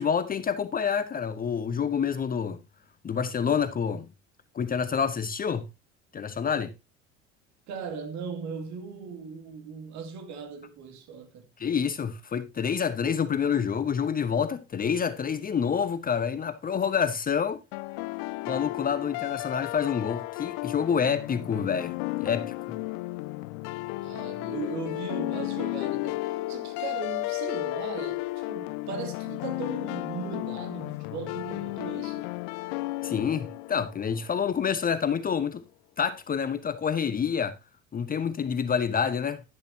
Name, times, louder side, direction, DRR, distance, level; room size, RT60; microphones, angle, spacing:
voice 1, 0.0-2.6 3.0-4.1 4.5-5.6 6.1-6.7 11.6-17.6 18.5-22.8 33.0-35.6 36.0-37.5 37.9-39.4, left 7 dB, 25° left, 0.9 m, -28 dB
voice 2, 7.7-11.5 24.0-32.3, right 6 dB, 50° right, 2.6 m, -38 dB
sound 1, 17.7-34.6, left 20 dB, 50° left, 0.5 m, -34 dB
11.0 x 10.0 x 2.7 m
figure-of-eight pair, 65°, 36 cm